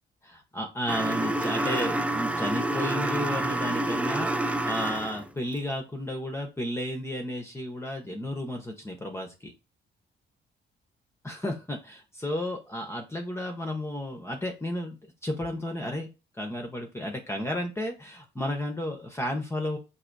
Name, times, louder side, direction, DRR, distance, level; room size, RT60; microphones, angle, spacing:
voice 1, 0.2-9.5 11.2-16.1 16.4-19.8, left 1 dB, 15° left, 3 dB, 0.9 m, -33 dB
sound 1, 0.9-5.3, right 1 dB, 5° right, 0.4 m, -28 dB
5.8 x 2.7 x 2.6 m, 0.29 s
cardioid pair, 90°, 20 cm